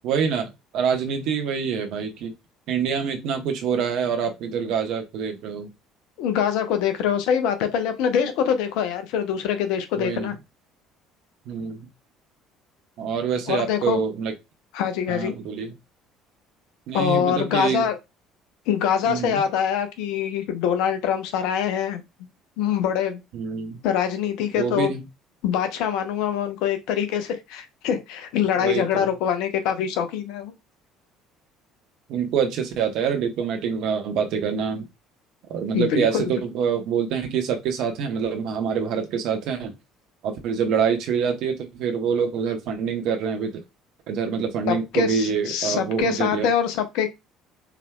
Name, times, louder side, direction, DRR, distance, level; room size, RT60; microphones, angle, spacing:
voice 1, 0.0-2.3 2.7-5.7 10.0-10.3 11.5-11.9 13.0-14.3 15.1-15.7 16.9-17.9 19.1-19.4 23.3-23.8 24.6-25.0 28.6-29.1 32.1-34.9 35.5-39.7 40.2-43.5 44.1-46.5, right 6 dB, 55° right, 1.1 m, -26 dB
voice 2, 6.2-10.4 13.5-14.0 14.7-15.3 16.9-17.9 18.7-22.0 22.6-23.2 23.8-24.9 25.4-30.5 35.7-36.3 44.7-47.1, left 8 dB, 60° left, 0.7 m, -24 dB
4.7 x 3.3 x 2.2 m
figure-of-eight pair, 55°, 0 cm